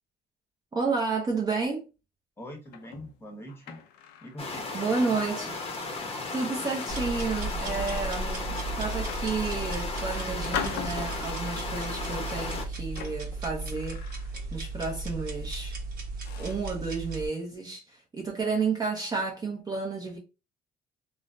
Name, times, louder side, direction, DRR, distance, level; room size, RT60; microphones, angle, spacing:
voice 1, 0.7-1.8 4.7-5.5 6.3-14.0 14.5-15.8 16.4-20.2, right 4 dB, 25° right, 0.6 m, -31 dB
voice 2, 2.4-3.8 4.2-5.2, equal, 15° left, 1.0 m, -43 dB
sound 1, 2.7-4.4 4.9-5.1 5.6-5.8 6.3-7.3 7.8-8.2 8.9-9.9 10.5-11.5 12.3-14.7 14.9-15.2 15.8-15.9 16.2-16.7, left 8 dB, 90° left, 0.5 m, -41 dB
sound 2, 4.4-12.6, left 3 dB, 35° left, 0.7 m, -35 dB
sound 3, 6.9-17.3, right 2 dB, 60° right, 1.0 m, -35 dB
3.1 x 2.1 x 2.5 m
cardioid pair, 110°, 17 cm